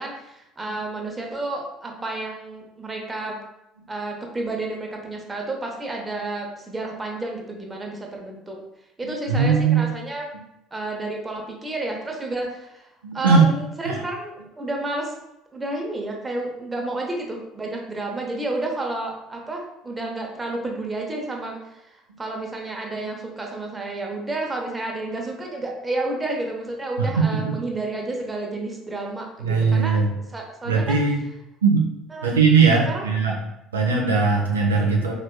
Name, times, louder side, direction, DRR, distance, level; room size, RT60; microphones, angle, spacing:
voice 1, 0.0-3.4 3.9-8.6 9.0-10.3 10.7-12.9 13.1-15.1 15.5-30.0 30.3-31.0 32.1-32.3 32.9-33.0, right 2 dB, 20° right, 0 dB, 0.8 m, -30 dB
voice 2, 9.0-9.8 10.3-10.4 13.0-13.5 13.9-14.0 27.0-27.6 29.4-30.1 30.7-31.2 31.6-31.9 32.2-33.4 33.7-35.1, right 5 dB, 80° right, -1 dB, 0.5 m, -19 dB
4.1 x 3.0 x 2.3 m, 0.87 s
figure-of-eight pair, 60°, 0 cm